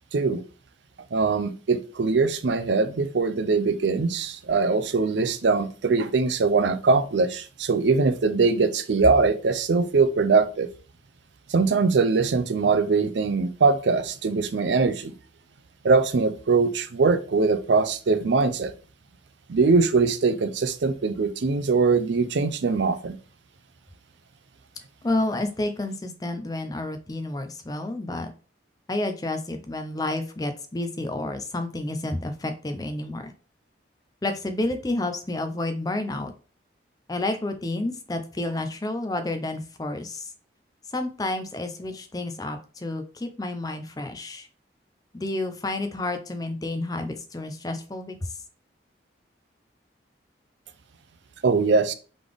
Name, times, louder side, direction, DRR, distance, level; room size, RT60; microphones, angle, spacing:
voice 1, 0.1-0.4 1.1-10.7 11.5-15.1 15.8-18.7 19.5-23.2 51.4-51.9, right 4 dB, 75° right, 0.5 m, -22 dB
voice 2, 25.0-28.3 28.9-33.3 34.2-36.3 37.1-40.3 40.9-44.5 45.1-48.4, left 2 dB, 20° left, 0.5 m, -30 dB
3.8 x 3.3 x 3.4 m
head